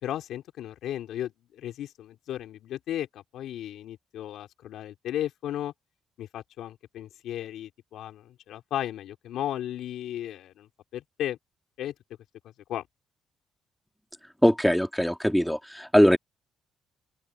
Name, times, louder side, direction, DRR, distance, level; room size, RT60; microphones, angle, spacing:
voice 1, 0.0-5.7 6.2-11.4 11.8-11.9 12.7-12.8, left 12 dB, 80° left, 3.5 m, -35 dB
voice 2, 14.4-16.2, equal, ahead, 2.8 m, -21 dB
open air
cardioid pair, 90°, 0 cm